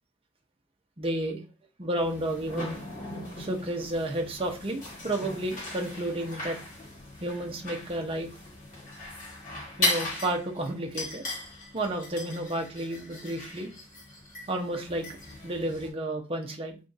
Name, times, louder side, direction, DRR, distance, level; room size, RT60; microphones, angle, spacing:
voice 1, 1.0-1.4 1.8-2.8 3.4-6.6 7.2-8.3 9.8-11.2 11.7-13.7 14.5-15.1 15.4-16.8, right 1 dB, 30° right, 1 dB, 0.7 m, -31 dB
sound 1, 2.0-15.9, left 1 dB, 40° left, 1.4 m, -37 dB
3.4 x 2.6 x 3.9 m, 0.30 s
head